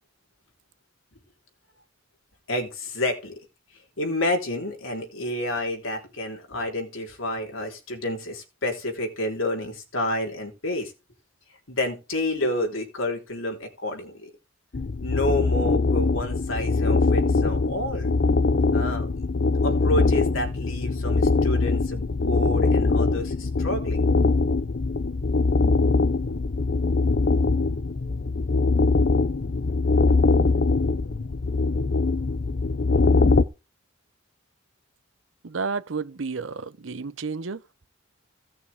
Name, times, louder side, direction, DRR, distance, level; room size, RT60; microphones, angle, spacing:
voice 1, 2.5-3.3 4.0-10.9 11.7-14.3 15.0-18.1 18.7-19.1 19.6-24.1, left 1 dB, 85° left, 3.5 m, -29 dB
sound 1, 14.7-33.5, left 3 dB, 55° left, 0.6 m, -22 dB
voice 2, 35.4-37.6, right 4 dB, 70° right, 0.7 m, -31 dB
17.0 x 6.4 x 3.5 m
head